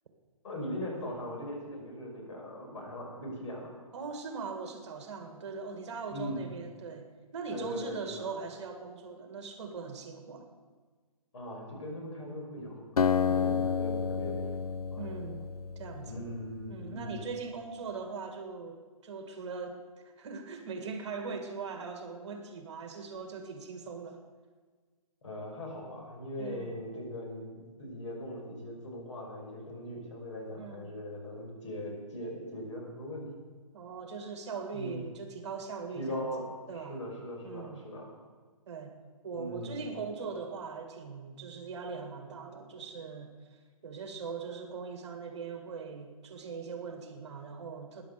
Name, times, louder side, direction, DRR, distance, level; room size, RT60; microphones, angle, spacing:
voice 1, 0.4-3.8 6.1-6.5 7.5-8.3 11.3-14.5 14.9-15.2 16.1-17.3 25.2-33.3 34.7-35.0 35.9-36.5 36.7-38.2 39.3-39.9, left 1 dB, 55° left, 0 dB, 5.7 m, -40 dB
voice 2, 3.9-10.5 13.3-13.7 15.0-15.5 15.8-16.3 16.7-18.8 19.0-24.2 26.4-26.7 30.6-30.9 33.7-37.0 37.4-37.8 38.7-38.9 39.2-43.6 43.8-48.0, right 5 dB, 50° right, 5 dB, 1.9 m, -41 dB
Acoustic guitar, 13.0-16.5, left 7 dB, 90° left, 0.5 m, -30 dB
14.5 x 10.5 x 6.7 m, 1.5 s
hypercardioid pair, 160°, 19 cm